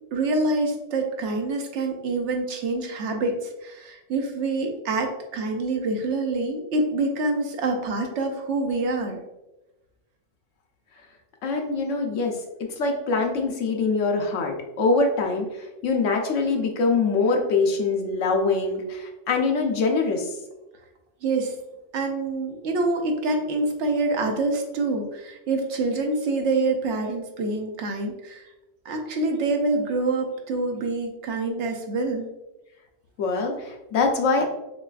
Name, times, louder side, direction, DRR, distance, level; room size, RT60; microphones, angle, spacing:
voice 1, 0.1-9.2 21.2-21.6 21.9-28.5 28.8-32.3, right 2 dB, 70° right, 3 dB, 1.0 m, -26 dB
voice 2, 11.4-20.4 33.2-34.4, left 4 dB, 90° left, 3 dB, 1.1 m, -24 dB
6.6 x 2.4 x 2.4 m, 0.98 s
omnidirectional pair, 1.3 m